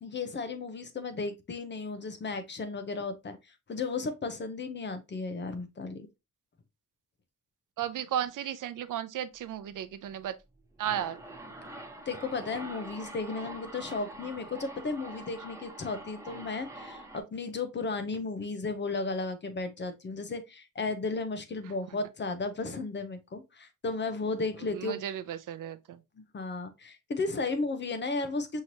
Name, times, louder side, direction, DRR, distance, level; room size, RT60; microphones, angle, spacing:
voice 1, 0.0-6.1 12.1-25.1 26.2-28.6, left 3 dB, 35° left, 0.7 m, -34 dB
voice 2, 7.8-10.3 10.8-11.2 24.7-26.0, right 10 dB, 75° right, 0.6 m, -34 dB
sound 1, 10.6-17.2, right 1 dB, 10° right, 0.7 m, -45 dB
5.6 x 3.1 x 2.7 m
wide cardioid pair, 160°, 33 cm